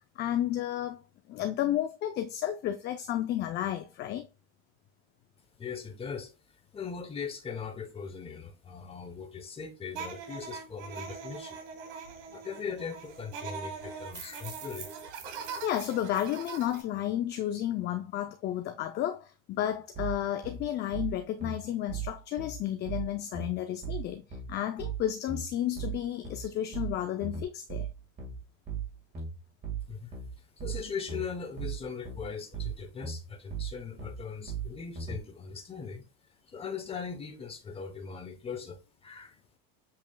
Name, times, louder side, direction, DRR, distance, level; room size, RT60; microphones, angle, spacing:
voice 1, 0.2-1.0 1.3-4.3 15.4-27.9, left 11 dB, 30° left, 0.4 m, -32 dB
voice 2, 5.6-6.3 6.7-11.6 12.3-14.9 29.9-30.1 30.6-36.0 36.5-39.4, left 6 dB, 15° left, 0.9 m, -40 dB
sound 1, 9.9-16.8, right 6 dB, 75° right, 1.6 m, -42 dB
sound 2, 19.9-35.2, right 6 dB, 30° right, 1.7 m, -37 dB
7.5 x 3.0 x 2.2 m
supercardioid pair, 130°, 35 cm